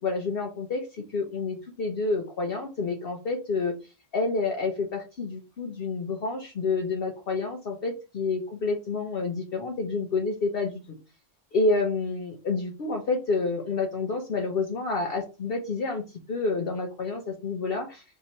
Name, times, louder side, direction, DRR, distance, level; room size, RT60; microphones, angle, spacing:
voice 1, 0.0-3.7 4.1-10.8 11.5-16.0 16.3-18.0, left 3 dB, 55° left, 2 dB, 0.8 m, -29 dB
3.3 x 2.9 x 4.2 m, 0.30 s
omnidirectional pair, 1.3 m